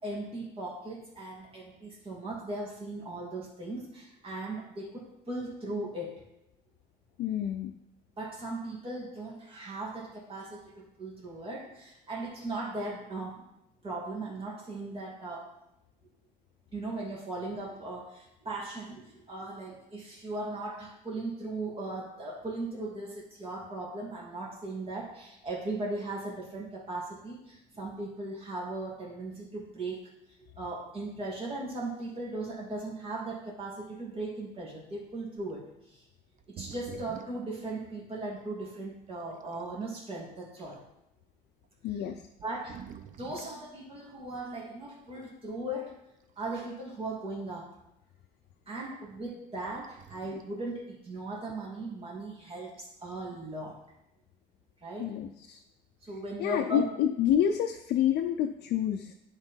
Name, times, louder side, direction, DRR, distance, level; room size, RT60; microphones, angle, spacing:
voice 1, 0.0-6.2 8.2-13.4 13.8-15.5 16.7-30.0 30.4-35.6 35.9-36.0 36.5-40.8 42.4-42.8 43.2-45.9 46.4-47.6 48.7-53.8 54.8-55.1 56.0-56.8, right 2 dB, 35° right, -3 dB, 2.8 m, -38 dB
voice 2, 7.2-7.7 41.8-42.2 55.0-55.6 56.4-59.1, left 10 dB, 75° left, 3 dB, 0.6 m, -28 dB
sound 1, 35.4-35.5 36.4-37.5 38.4-38.5 39.2-39.8 40.5-40.7 41.6-41.7 42.3-43.6 45.2-45.4 46.2-46.9 47.2-47.3 49.7-50.6 52.7-53.2, right 8 dB, 50° right, 0.6 m, -48 dB
10.5 x 3.9 x 4.5 m, 0.87 s
cardioid pair, 110°, 17 cm